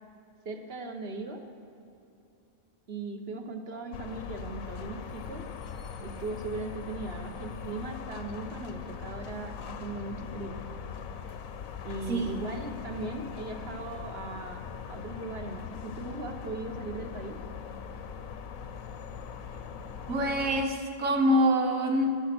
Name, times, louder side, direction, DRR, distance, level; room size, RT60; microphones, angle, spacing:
voice 1, 0.4-1.4 2.9-5.5 6.0-10.6 11.8-17.4, right 3 dB, 50° right, 4 dB, 1.5 m, -38 dB
sound 1, 3.9-20.6, left 6 dB, 80° left, 1.2 m, -41 dB
voice 2, 12.1-12.4 20.1-22.3, equal, 85° right, 4 dB, 1.8 m, -25 dB
15.5 x 12.5 x 6.1 m, 2.8 s
omnidirectional pair, 1.4 m